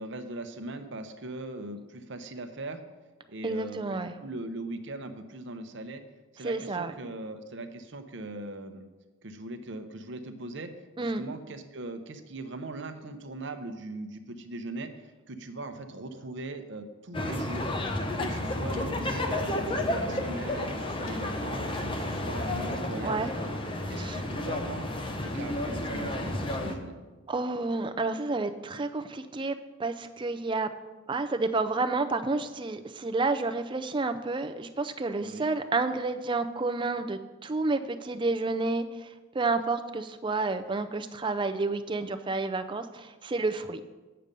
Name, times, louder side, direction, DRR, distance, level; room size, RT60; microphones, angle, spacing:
voice 1, 0.0-2.8 3.3-6.0 6.3-8.9 9.2-10.7 11.0-17.7 18.1-23.3 23.9-24.9 25.2-27.0 35.2-35.5, right 2 dB, 60° right, 8 dB, 0.8 m, -40 dB
voice 2, 3.4-4.1 6.4-6.9 11.0-11.2 23.0-23.3 23.9-24.2 27.3-30.7 31.1-43.8, right 3 dB, 25° right, 9 dB, 0.4 m, -30 dB
sound 1, 17.1-26.8, left 1 dB, 25° left, 0.7 m, -31 dB
sound 2, 18.2-18.3 18.7-19.0 19.3-20.1 20.4-26.0, left 2 dB, 75° left, 1.2 m, -51 dB
8.7 x 6.7 x 5.3 m, 1.2 s
head